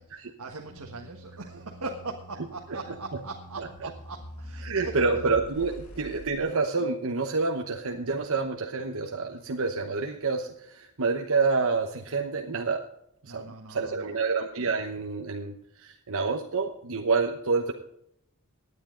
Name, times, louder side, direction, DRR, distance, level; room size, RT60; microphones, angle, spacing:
voice 1, 0.0-5.0 13.2-14.2, right 3 dB, 85° right, 2 dB, 1.5 m, -40 dB
sound 1, 0.7-6.4, equal, 75° left, 2.3 m, -45 dB
voice 2, 4.6-12.8 13.2-17.7, right 4 dB, 65° right, 3 dB, 1.0 m, -28 dB
17.5 x 10.0 x 3.8 m, 0.75 s
head